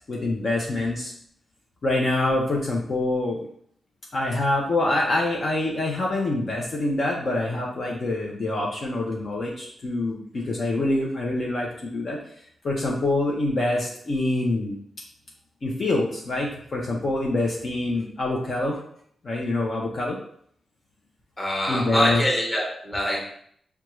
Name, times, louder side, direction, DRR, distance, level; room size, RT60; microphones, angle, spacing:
voice 1, 0.1-1.1 1.8-3.4 4.1-12.2 12.6-14.8 15.6-18.8 19.2-20.2 21.7-22.2, left 2 dB, 40° left, -2 dB, 0.6 m, -25 dB
voice 2, 21.4-23.3, left 1 dB, 10° left, -2 dB, 0.9 m, -24 dB
6.1 x 2.3 x 3.0 m, 0.64 s
wide cardioid pair, 165°, 0 cm